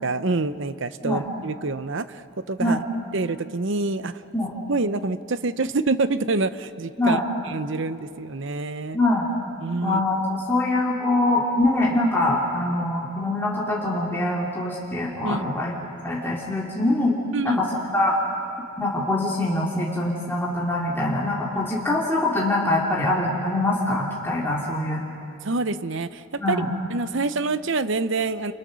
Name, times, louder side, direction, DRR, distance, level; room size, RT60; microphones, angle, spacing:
voice 1, 0.0-2.8 3.1-4.2 4.7-7.2 7.5-9.0 9.6-10.0 15.2-15.5 17.3-17.6 21.5-21.7 25.4-26.6 26.9-28.5, right 3 dB, 55° right, 13 dB, 0.8 m, -26 dB
voice 2, 8.9-9.3 9.8-15.7 16.0-17.2 17.4-18.1 18.8-25.0 26.4-26.7, left 2 dB, 10° left, -5 dB, 2.5 m, -24 dB
30.0 x 28.5 x 6.3 m, 2.7 s
head